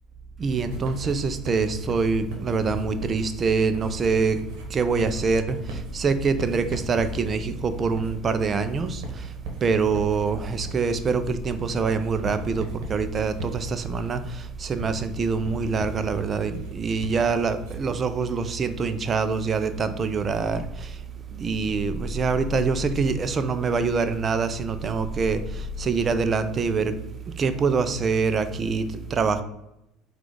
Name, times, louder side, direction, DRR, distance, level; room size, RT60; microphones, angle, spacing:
voice 1, 0.4-4.4 4.7-9.2 9.6-20.9 21.4-25.4 25.8-27.0 27.4-28.8 29.1-29.4, right 4 dB, 35° right, 0.4 m, -25 dB
Writing, 0.6-18.0, right 1 dB, 75° right, 1.0 m, -38 dB
3.9 x 2.4 x 4.6 m
supercardioid pair, 85°, 0 cm